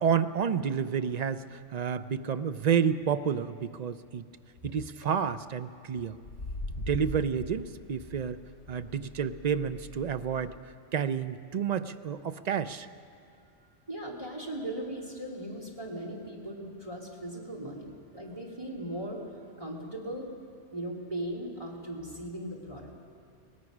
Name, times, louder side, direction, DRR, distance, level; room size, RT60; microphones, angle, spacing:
voice 1, 0.0-4.3 4.6-6.2 6.8-8.4 8.7-10.6 10.9-12.9, right 7 dB, 50° right, 11 dB, 0.5 m, -30 dB
sound 1, 4.7-5.1 6.2-10.6, left 2 dB, 60° left, 2.7 m, -41 dB
voice 2, 13.9-19.2 19.6-20.3 20.7-22.9, right 1 dB, 25° right, -1 dB, 2.6 m, -38 dB
22.5 x 18.5 x 6.1 m, 2.3 s
omnidirectional pair, 1.3 m